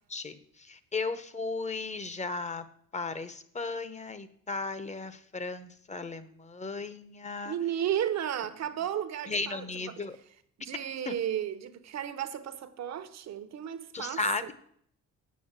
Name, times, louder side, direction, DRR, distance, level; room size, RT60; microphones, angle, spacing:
voice 1, 0.1-2.7 2.9-7.6 9.3-10.2 11.1-11.2 13.9-14.5, left 3 dB, 25° left, 0.9 m, -35 dB
voice 2, 7.4-9.6 10.0-10.1 10.6-14.2, right 10 dB, 60° right, 0.9 m, -33 dB
8.5 x 6.3 x 7.4 m
cardioid pair, 90°, 30 cm